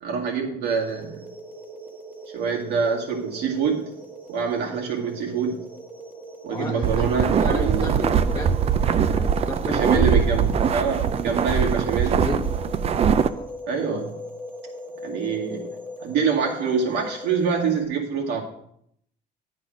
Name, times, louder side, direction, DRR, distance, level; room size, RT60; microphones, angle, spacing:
voice 1, 0.0-1.2 2.3-4.0 4.3-5.6 6.4-8.0 9.7-12.2 13.7-14.2 15.0-15.7 16.0-18.4, right 6 dB, 80° right, -1 dB, 2.1 m, -25 dB
sound 1, 0.6-17.9, right 1 dB, 10° right, 1.2 m, -39 dB
voice 2, 6.5-10.2 12.0-12.5 13.1-13.5, left 3 dB, 20° left, 0 dB, 1.2 m, -33 dB
sound 2, 6.8-13.3, right 7 dB, 35° right, 0.4 m, -22 dB
9.9 x 4.1 x 6.2 m, 0.70 s
cardioid pair, 110°, 17 cm